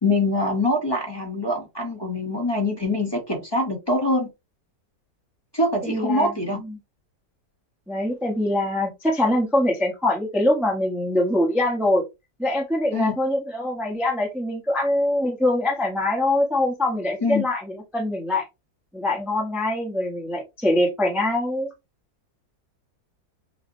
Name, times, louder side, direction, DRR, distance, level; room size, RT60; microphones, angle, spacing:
voice 1, 0.0-4.3 5.5-6.6 12.9-13.1 17.2-17.4, left 2 dB, 20° left, 0.7 m, -24 dB
voice 2, 5.8-6.3 6.6-6.8 7.9-12.0 12.4-17.6 17.9-18.5 18.9-21.7, left 1 dB, ahead, 0.4 m, -23 dB
5.8 x 2.0 x 2.6 m
omnidirectional pair, 1.9 m